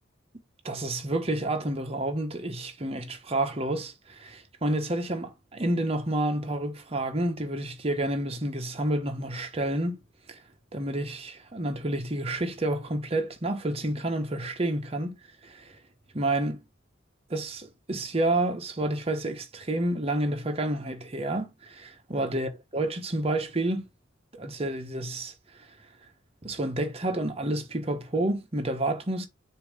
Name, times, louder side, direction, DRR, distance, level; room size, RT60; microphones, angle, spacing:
voice 1, 0.6-10.0 10.3-10.4 10.7-15.2 15.4-15.8 16.1-16.6 17.3-23.9 24.3-25.3 26.4-29.3, right 1 dB, 30° right, 1.0 m, -29 dB
6.8 x 2.7 x 5.0 m
head